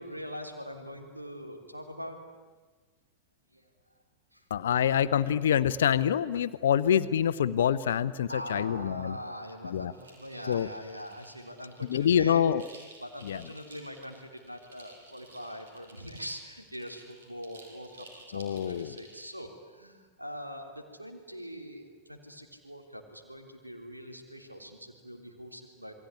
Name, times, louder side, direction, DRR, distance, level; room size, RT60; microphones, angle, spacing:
voice 1, 0.0-2.2 3.5-3.6 4.3-4.4 8.3-12.4 13.0-25.9, equal, 85° right, 4 dB, 3.5 m, -43 dB
voice 2, 4.5-9.2 9.6-9.9 10.5-10.7 11.8-12.6 13.2-13.4 18.3-19.0, left 9 dB, 60° left, 13 dB, 0.8 m, -26 dB
sound 1, 9.9-19.4, right 2 dB, 70° right, 6.7 m, -54 dB
28.5 x 21.5 x 9.8 m, 1.4 s
figure-of-eight pair, 90°, 0 cm